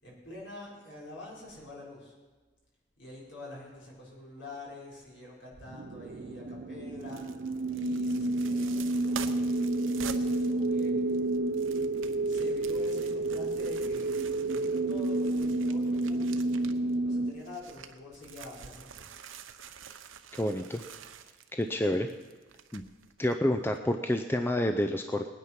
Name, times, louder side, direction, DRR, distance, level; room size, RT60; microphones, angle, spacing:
voice 1, 0.0-2.1 3.0-7.3 7.7-11.1 12.2-14.1 14.5-16.3 17.0-19.0, left 1 dB, 60° left, -4 dB, 5.1 m, -46 dB
sound 1, 5.6-17.3, right 2 dB, 55° right, 0.5 m, -30 dB
sound 2, 7.0-16.9 17.3-23.3 23.7-23.8, right 8 dB, 80° right, 0.8 m, -47 dB
voice 2, 20.4-20.8 21.5-22.1 22.7-22.8 23.2-25.3, left 1 dB, 10° left, 6 dB, 0.5 m, -28 dB
20.0 x 9.5 x 5.9 m, 1.3 s
head